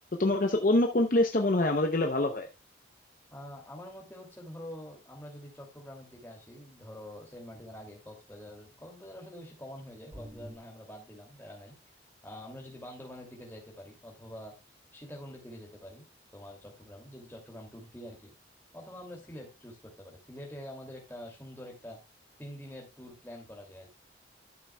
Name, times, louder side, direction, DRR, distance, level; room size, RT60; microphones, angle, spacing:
voice 1, 0.1-2.5, left 2 dB, 45° left, 4 dB, 0.7 m, -25 dB
voice 2, 3.3-11.7 12.2-14.5 14.9-16.0 16.3-18.3 18.7-22.0 22.4-23.9, left 1 dB, 10° left, -1 dB, 2.5 m, -46 dB
sound 1, 10.1-10.6, equal, 15° right, 0.9 m, -45 dB
12.5 x 6.8 x 2.2 m, 0.24 s
head